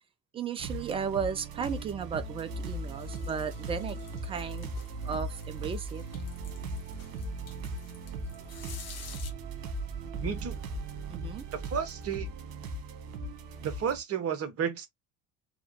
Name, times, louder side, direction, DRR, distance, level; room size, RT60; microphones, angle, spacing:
voice 1, 0.3-4.7 5.0-6.0 11.1-11.4, right 7 dB, 15° right, 0.3 m, -35 dB
sound 1, 0.6-14.0, right 1 dB, 55° right, 1.4 m, -40 dB
sound 2, 1.9-12.4, right 4 dB, ahead, 2.7 m, -42 dB
sound 3, 2.5-9.3, left 6 dB, 35° left, 1.4 m, -52 dB
voice 2, 10.2-10.6 11.5-12.3 13.6-14.9, right 7 dB, 30° right, 1.1 m, -32 dB
3.8 x 3.0 x 3.0 m
figure-of-eight pair, 65°, 45 cm